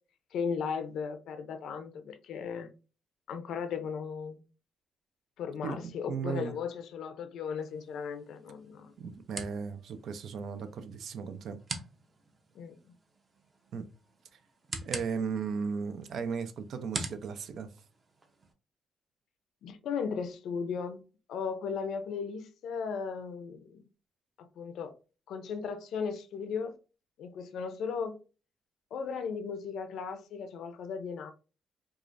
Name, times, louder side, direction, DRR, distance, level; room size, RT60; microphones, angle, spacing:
voice 1, 0.3-2.7 3.3-4.4 5.4-8.9 12.5-13.0 19.6-23.8 24.4-24.9 25.3-26.8 27.2-28.2 28.9-31.3, left 6 dB, 75° left, 0.6 m, -36 dB
voice 2, 5.6-6.6 9.0-11.6 13.7-13.9 14.8-17.7, right 6 dB, 65° right, 0.6 m, -36 dB
sound 1, 7.6-18.5, right 3 dB, 35° right, 0.8 m, -45 dB
4.8 x 2.5 x 2.6 m
cardioid pair, 110°, 0 cm